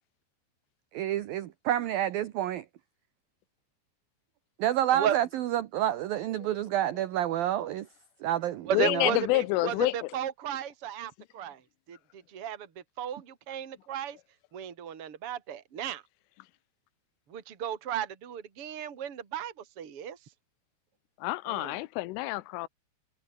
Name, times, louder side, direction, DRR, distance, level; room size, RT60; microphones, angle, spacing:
voice 1, 0.9-2.6 4.6-7.9 8.2-9.1, right 12 dB, 75° right, 2.2 m, -29 dB
voice 2, 4.8-5.2 8.7-11.6 11.9-12.7 13.0-14.2 14.5-16.0 17.3-20.2 21.5-21.8, right 9 dB, 35° right, 3.1 m, -34 dB
voice 3, 8.7-10.1 21.2-22.7, left 19 dB, 85° left, 3.3 m, -28 dB
omnidirectional pair, 5.7 m